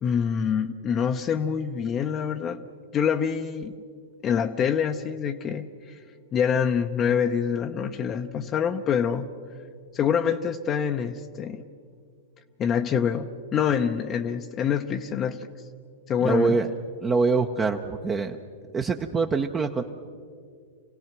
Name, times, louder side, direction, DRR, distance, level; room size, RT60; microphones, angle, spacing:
voice 1, 0.0-2.6 2.9-3.7 4.2-6.0 6.3-9.3 9.9-11.6 12.6-15.5 16.1-16.6, left 7 dB, 30° left, 6 dB, 0.7 m, -26 dB
voice 2, 16.2-16.7 17.0-18.4 18.7-19.8, right 4 dB, 20° right, 4 dB, 0.8 m, -24 dB
26.5 x 17.0 x 6.1 m, 2.2 s
hypercardioid pair, 120°, 0 cm